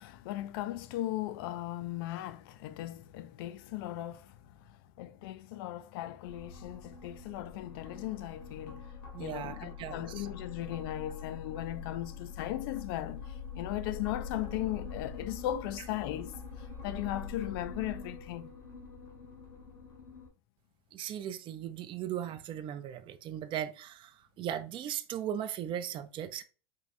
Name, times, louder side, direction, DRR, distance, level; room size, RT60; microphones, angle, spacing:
voice 1, 0.0-8.9 9.2-18.5, left 14 dB, 70° left, 0.4 m, -38 dB
sound 1, 6.2-20.3, left 5 dB, 90° left, 1.8 m, -44 dB
voice 2, 9.1-10.3 20.9-24.1 24.4-26.4, right 10 dB, 40° right, 0.5 m, -38 dB
4.6 x 3.1 x 2.5 m
hypercardioid pair, 90°, 12 cm